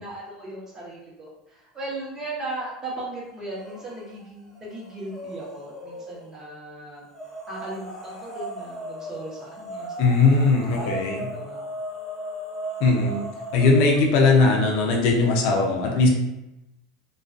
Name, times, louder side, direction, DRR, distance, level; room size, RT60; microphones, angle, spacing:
voice 1, 0.0-7.0 7.5-11.0 11.3-11.7, right 1 dB, 20° right, -5 dB, 1.0 m, -37 dB
sound 1, 3.6-4.2 4.5-6.3 7.1-14.3, right 1 dB, 20° left, 0.6 m, -37 dB
voice 2, 10.0-11.3 12.8-13.3 13.5-16.1, left 3 dB, 65° left, 1 dB, 0.5 m, -19 dB
2.3 x 2.2 x 2.5 m, 0.89 s
hypercardioid pair, 100°, 2 cm